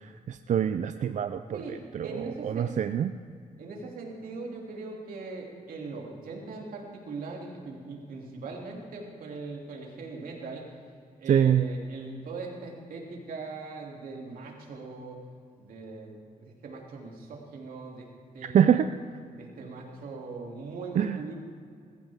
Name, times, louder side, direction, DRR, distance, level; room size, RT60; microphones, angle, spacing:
voice 1, 0.0-3.1 11.3-11.7 18.4-18.9 20.9-21.3, right 9 dB, 60° right, 9 dB, 0.5 m, -25 dB
voice 2, 1.5-2.7 3.6-10.7 11.2-15.2 15.6-18.8 19.4-21.3, right 3 dB, 90° right, -1 dB, 2.8 m, -40 dB
20.5 x 14.5 x 3.6 m, 2.2 s
cardioid pair, 110°, 14 cm